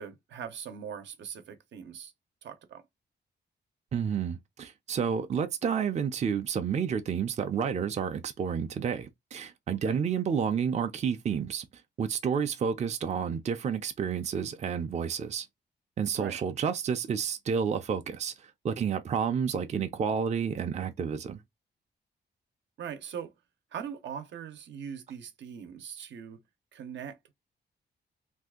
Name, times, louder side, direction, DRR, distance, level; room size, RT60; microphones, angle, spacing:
voice 1, 0.0-2.1 2.4-2.8 9.8-10.0 16.2-16.4 22.8-23.3 23.7-26.4 26.7-27.3, right 8 dB, 90° right, 0.7 m, -41 dB
voice 2, 3.9-11.6 12.0-15.5 16.0-21.4, right 7 dB, 40° right, 0.4 m, -30 dB
2.7 x 2.4 x 3.5 m
wide cardioid pair, 140°, 18 cm